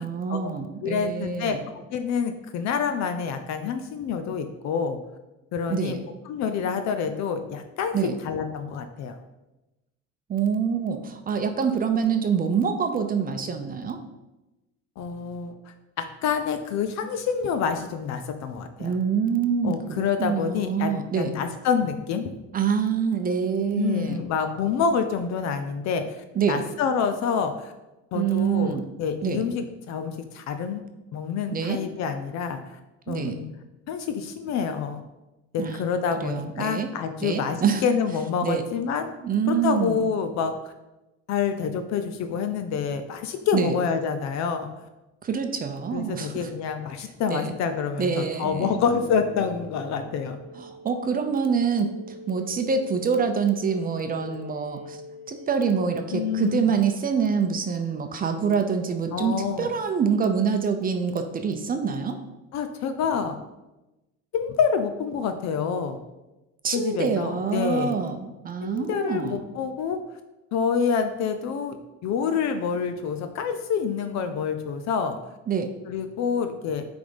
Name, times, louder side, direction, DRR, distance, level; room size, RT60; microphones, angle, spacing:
voice 1, 0.0-1.6 5.7-6.1 7.9-8.1 10.3-14.0 18.8-21.3 22.5-24.2 26.4-26.6 28.1-28.9 29.2-29.4 31.5-31.8 33.1-33.4 35.6-35.8 36.2-36.9 37.2-37.8 38.4-38.6 39.2-40.1 43.5-43.7 45.2-46.5 47.3-47.5 48.0-48.8 50.6-51.9 52.3-55.0 55.3-62.2 66.6-69.4 75.5-75.7, right 6 dB, 30° right, 7 dB, 0.6 m, -26 dB
voice 2, 0.8-5.0 5.5-6.0 6.3-7.9 8.2-9.2 15.0-15.5 16.0-18.9 19.6-22.3 23.7-27.7 28.1-30.8 31.1-32.8 33.1-33.4 33.9-35.0 35.5-39.1 39.5-40.7 41.3-44.7 45.9-50.4 56.1-56.7 59.1-59.7 62.5-63.4 64.3-66.0 66.7-68.0 68.6-70.0 70.5-71.8 72.0-75.2 75.9-76.9, left 6 dB, 65° left, 8 dB, 0.7 m, -27 dB
sound 1, 48.6-56.5, left 2 dB, 20° left, 0.7 m, -43 dB
9.2 x 3.5 x 5.1 m, 1.0 s
cardioid pair, 145°, 30 cm